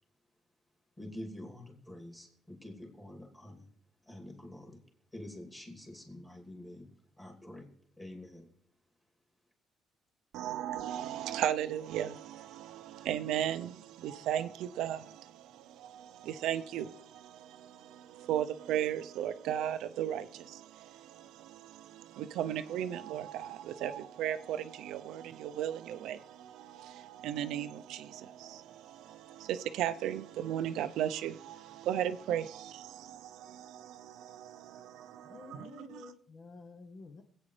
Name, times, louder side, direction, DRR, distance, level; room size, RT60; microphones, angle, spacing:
voice 1, 1.0-3.7 4.1-4.8 5.1-6.9 7.2-7.7 8.0-8.5, left 1 dB, 10° left, 2.6 m, -47 dB
voice 2, 10.3-36.1, right 11 dB, 80° right, 0.6 m, -36 dB
voice 3, 35.3-37.2, left 4 dB, 35° left, 0.8 m, -50 dB
25.5 x 8.7 x 3.3 m
cardioid pair, 165°, 0 cm